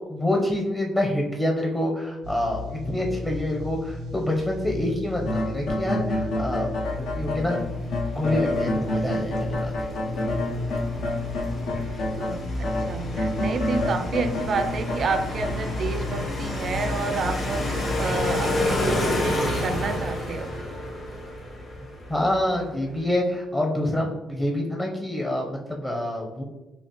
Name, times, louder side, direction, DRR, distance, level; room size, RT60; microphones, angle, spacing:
voice 1, 0.0-7.6 8.1-9.9 11.9-12.0 22.1-26.4, left 1 dB, 15° left, 0 dB, 0.6 m, -27 dB
sound 1, 2.2-18.9, left 2 dB, 85° right, 0.7 m, -34 dB
sound 2, 5.3-12.4 12.6-15.5, left 1 dB, 85° left, 0.8 m, -28 dB
sound 3, 6.5-22.7, left 1 dB, 60° left, 1.5 m, -31 dB
voice 2, 8.9-9.7 12.1-20.5, right 4 dB, 55° right, 9 dB, 0.4 m, -30 dB
5.8 x 2.0 x 2.9 m, 1.1 s
cardioid pair, 90°, 0 cm